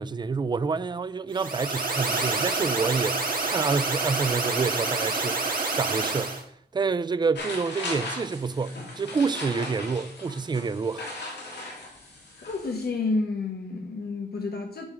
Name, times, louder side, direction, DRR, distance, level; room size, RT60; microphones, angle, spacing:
voice 1, 0.0-6.4 6.7-11.0, right 4 dB, 25° right, 0.3 m, -28 dB
sound 1, 1.3-6.4, right 3 dB, 55° right, 1.7 m, -28 dB
sound 2, 7.3-12.8, left 2 dB, 80° left, 2.1 m, -38 dB
voice 2, 12.5-14.9, left 3 dB, 65° left, 1.1 m, -30 dB
9.6 x 3.6 x 6.0 m
wide cardioid pair, 135°, 17 cm